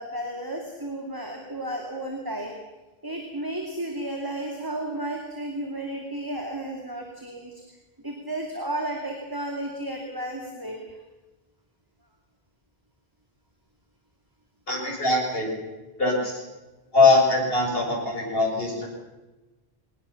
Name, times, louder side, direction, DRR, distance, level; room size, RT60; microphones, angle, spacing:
voice 1, 0.0-2.5 3.0-7.5 8.0-11.0, right 1 dB, 20° right, 2 dB, 2.8 m, -33 dB
voice 2, 14.7-15.5 16.0-16.3 16.9-18.9, left 3 dB, 65° left, -1 dB, 7.3 m, -21 dB
23.5 x 19.0 x 7.2 m, 1.1 s
omnidirectional pair, 1.0 m